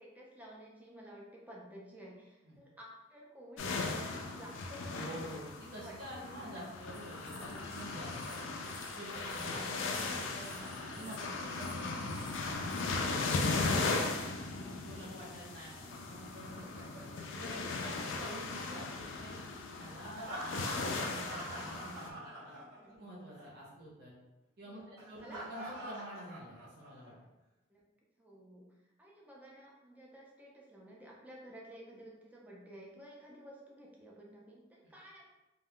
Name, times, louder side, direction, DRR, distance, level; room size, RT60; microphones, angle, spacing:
voice 1, 0.0-5.2 5.8-6.0 6.3-6.6 22.5-23.0 24.7-25.4 27.7-27.8 28.2-28.7 29.0-35.2, right 1 dB, 10° right, -3 dB, 0.4 m, -53 dB
sound 1, 3.6-22.1, left 3 dB, 85° left, 0.4 m, -38 dB
voice 2, 4.9-8.6 8.9-13.2 13.6-16.8 17.2-19.4 19.7-22.5 22.9-24.1 24.6-27.2 34.8-34.9, right 1 dB, 55° right, -5 dB, 0.9 m, -48 dB
sound 2, 6.9-13.8, left 1 dB, 10° left, 0.9 m, -55 dB
Laughter, 10.4-14.5 16.2-18.3 20.0-23.1 23.3-23.5 25.0-27.1, right 1 dB, 85° right, 0.9 m, -47 dB
2.3 x 2.2 x 3.5 m, 1.0 s
head